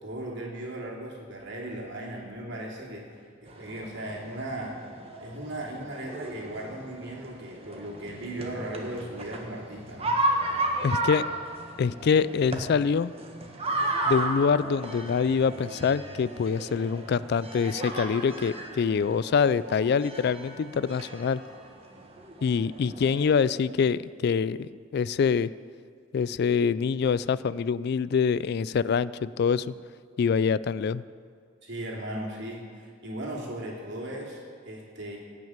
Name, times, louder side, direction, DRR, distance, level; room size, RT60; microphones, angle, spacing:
voice 1, 0.0-4.8 5.2-10.2 31.6-35.2, right 1 dB, 60° right, -2 dB, 2.9 m, -37 dB
sound 1, 3.5-23.2, right 1 dB, 30° right, 1.5 m, -34 dB
voice 2, 10.8-11.2 11.8-13.1 14.1-21.4 22.4-25.5 26.1-29.7 30.2-31.0, left 6 dB, 55° left, 18 dB, 0.3 m, -25 dB
17.0 x 6.2 x 8.9 m, 2.2 s
head